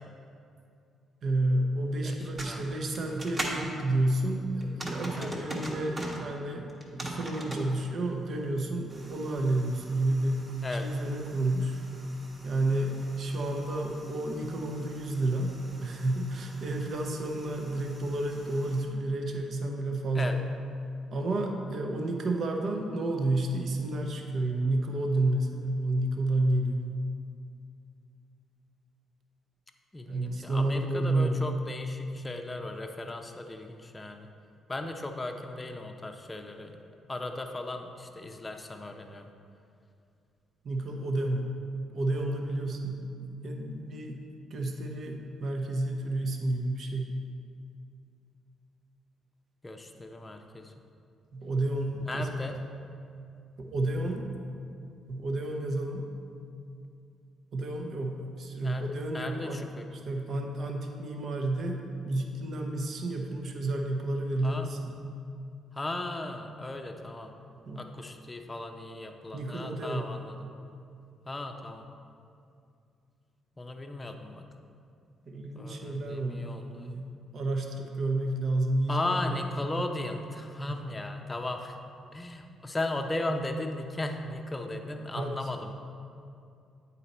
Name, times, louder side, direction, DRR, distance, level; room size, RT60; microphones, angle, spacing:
voice 1, 1.2-10.5 10.8-11.8 12.4-15.5 15.8-20.4 21.1-26.9 30.1-31.4 40.6-41.4 41.9-44.2 44.5-47.1 51.3-52.4 53.6-54.3 55.1-56.0 57.5-65.0 67.7-67.9 69.3-70.0 75.3-77.0 77.3-79.4 80.7-80.8 85.2-85.4, right 2 dB, 55° right, 2 dB, 0.8 m, -30 dB
voice 2, 2.0-2.8 5.2-5.3 10.6-10.9 20.1-20.4 29.9-34.3 34.7-36.8 37.1-39.3 49.6-50.7 52.1-52.6 58.6-58.9 59.1-59.9 64.4-64.8 65.7-67.3 67.7-70.4 71.3-71.9 73.6-74.4 75.5-76.9 78.9-81.8 82.1-85.7, left 2 dB, 20° left, 4 dB, 0.6 m, -36 dB
sound 1, 2.1-3.6 4.6-6.2 6.7-7.7 8.9-18.8, right 1 dB, 25° right, 1.2 m, -42 dB
8.6 x 4.1 x 4.2 m, 2.5 s
cardioid pair, 90°, 0 cm